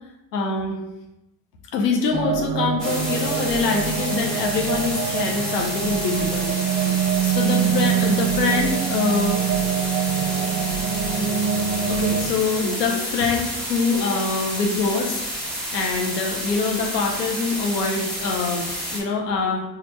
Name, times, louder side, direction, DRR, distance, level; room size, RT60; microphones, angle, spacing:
voice 1, 0.3-0.8 1.7-7.0 7.2-9.4 11.1-11.3 11.9-15.2 15.7-19.7, left 4 dB, 85° left, 2 dB, 0.7 m, -24 dB
sound 1, 2.1-12.3, right 8 dB, 35° right, 0.7 m, -24 dB
sound 2, 2.8-19.0, equal, ahead, 1.2 m, -30 dB
4.3 x 2.5 x 3.0 m, 0.92 s
hypercardioid pair, 65°, 47 cm